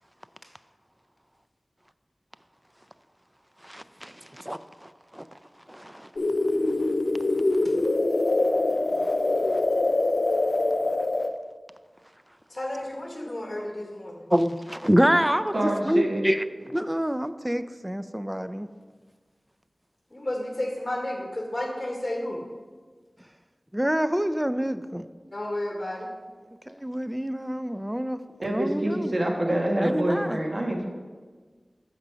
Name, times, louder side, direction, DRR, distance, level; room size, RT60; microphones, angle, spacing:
voice 1, 3.6-5.2 5.7-6.1 14.3-15.5 15.8-18.7 23.7-25.0 26.7-29.1 29.5-30.4, equal, 10° right, 12 dB, 0.4 m, -27 dB
sound 1, 6.2-11.3, left 2 dB, 80° left, 0.4 m, -24 dB
voice 2, 12.5-14.2 20.1-22.4 25.3-26.1, left 1 dB, 35° left, 1 dB, 1.1 m, -32 dB
voice 3, 15.5-16.2 28.4-30.9, right 1 dB, 55° right, 1 dB, 1.3 m, -26 dB
6.0 x 5.1 x 6.6 m, 1.5 s
wide cardioid pair, 50°, 0 cm